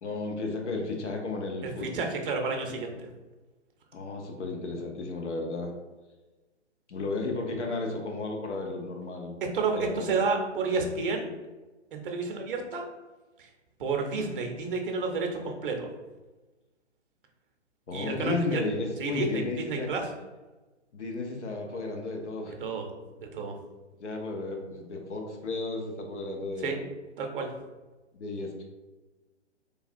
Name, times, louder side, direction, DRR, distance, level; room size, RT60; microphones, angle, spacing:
voice 1, 0.0-2.1 3.9-5.7 6.9-9.4 9.8-10.1 17.9-19.9 20.9-22.6 24.0-26.8 28.1-28.6, left 3 dB, 75° left, 2 dB, 0.7 m, -33 dB
voice 2, 1.6-3.1 9.5-11.3 11.9-12.8 13.4-13.5 13.8-15.9 17.9-18.6 19.0-20.1 22.6-22.9 23.2-23.5 26.6-26.8 27.2-27.5, right 4 dB, 50° right, 3 dB, 0.6 m, -30 dB
3.3 x 2.3 x 2.5 m, 1.2 s
figure-of-eight pair, 135°, 35 cm